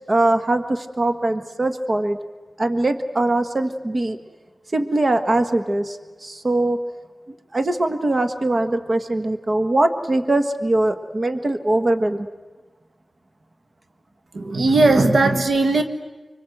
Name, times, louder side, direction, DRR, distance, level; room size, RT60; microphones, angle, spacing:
voice 1, 0.1-2.2 2.6-4.2 4.7-6.8 7.5-12.3, right 2 dB, 45° right, 8 dB, 1.5 m, -21 dB
voice 2, 14.3-15.8, right 2 dB, 75° right, 6 dB, 1.4 m, -17 dB
25.0 x 24.0 x 7.9 m, 1.3 s
wide cardioid pair, 60°, 0 cm